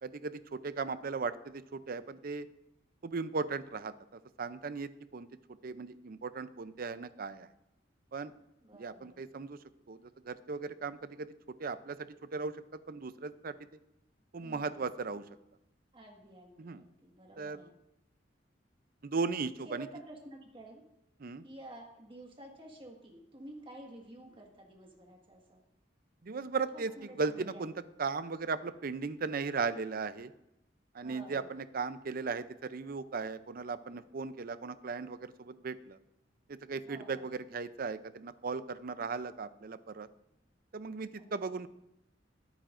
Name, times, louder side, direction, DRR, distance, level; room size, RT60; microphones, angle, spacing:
voice 1, 0.0-2.5 3.0-3.9 4.4-5.3 5.6-7.5 8.1-8.3 8.8-9.6 9.9-11.3 11.6-12.5 12.9-13.6 14.3-15.2 16.6-16.8 17.4-17.6 19.0-19.9 21.2-21.4 26.2-26.9 27.2-27.7 28.0-30.3 30.9-36.0 36.5-40.1 40.7-41.7, right 4 dB, 50° right, 13 dB, 0.5 m, -37 dB
voice 2, 8.6-9.2 14.4-14.9 15.9-17.7 19.6-20.8 21.4-25.6 26.7-27.6 31.0-31.5 36.9-37.3 41.2-41.7, right 1 dB, 30° right, 0 dB, 1.7 m, -51 dB
20.5 x 9.1 x 2.6 m, 0.86 s
head